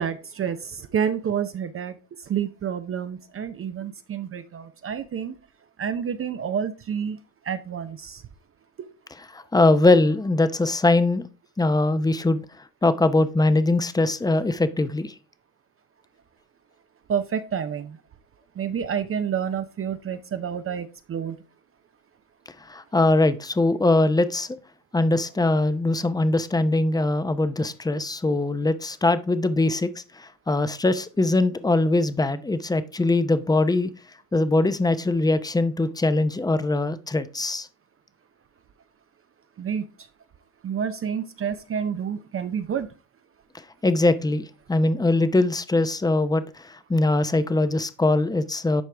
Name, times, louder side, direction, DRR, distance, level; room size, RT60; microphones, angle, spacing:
voice 1, 0.0-1.9 2.3-5.4 5.8-7.2 7.5-8.2 17.1-18.0 18.6-21.4 39.6-39.8 40.6-42.9, right 8 dB, 35° right, 10 dB, 0.7 m, -29 dB
voice 2, 9.3-11.2 11.6-12.5 12.8-15.1 22.7-24.5 24.9-33.9 34.3-37.7 43.8-48.8, left 2 dB, 10° left, 12 dB, 0.7 m, -22 dB
11.5 x 4.6 x 3.4 m, 0.33 s
supercardioid pair, 95°, 39 cm